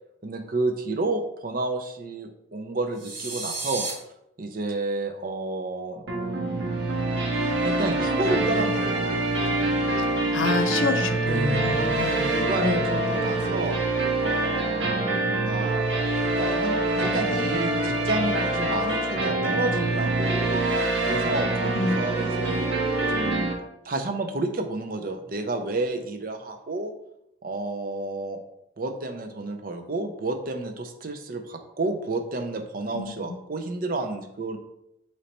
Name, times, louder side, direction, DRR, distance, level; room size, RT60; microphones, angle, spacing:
voice 1, 0.2-3.8 4.4-6.0 7.6-9.2 9.5-9.6 11.2-11.6 12.4-13.8 14.2-15.8 16.2-20.6 21.1-22.7 23.1-23.5 23.8-26.9 27.4-28.4 28.8-34.6, right 2 dB, 45° right, 6 dB, 0.5 m, -30 dB
sound 1, 3.0-3.9, right 3 dB, 85° right, 1.8 m, -32 dB
sound 2, 6.1-23.5, right 2 dB, 65° right, 1.0 m, -25 dB
voice 2, 10.0-12.3 12.6-12.7 21.7-22.0 32.9-33.4, left 3 dB, 75° left, 7 dB, 0.5 m, -28 dB
3.9 x 3.2 x 4.2 m, 0.80 s
head